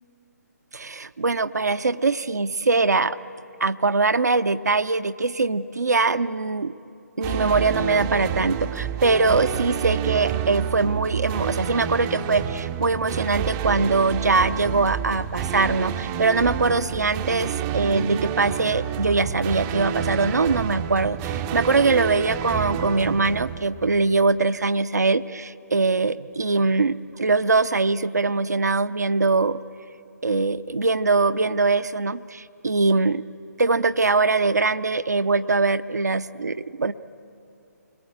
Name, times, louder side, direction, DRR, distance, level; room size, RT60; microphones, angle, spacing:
voice 1, 0.7-3.2 3.6-6.7 7.2-29.6 30.2-33.2 33.6-36.9, right 3 dB, 70° right, 12 dB, 0.7 m, -22 dB
sound 1, 7.2-24.3, right 9 dB, 20° right, 0.6 m, -29 dB
29.5 x 22.0 x 8.8 m, 2.7 s
figure-of-eight pair, 140°, 9 cm